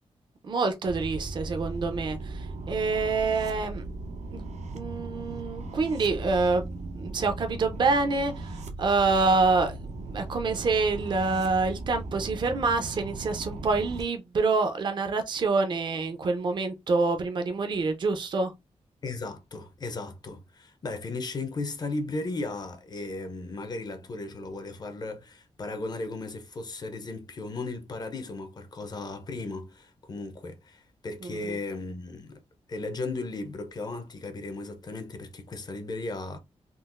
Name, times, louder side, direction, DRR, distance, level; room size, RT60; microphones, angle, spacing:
voice 1, 0.4-3.8 4.3-4.4 4.7-6.7 6.9-9.8 10.1-18.5 31.2-31.6, right 3 dB, 40° right, 0.5 m, -26 dB
sound 1, 0.9-14.0, right 3 dB, 80° right, 0.7 m, -38 dB
voice 2, 19.0-32.4 32.7-36.4, left 3 dB, 35° left, 0.5 m, -36 dB
3.7 x 2.4 x 2.4 m
wide cardioid pair, 175°, 12 cm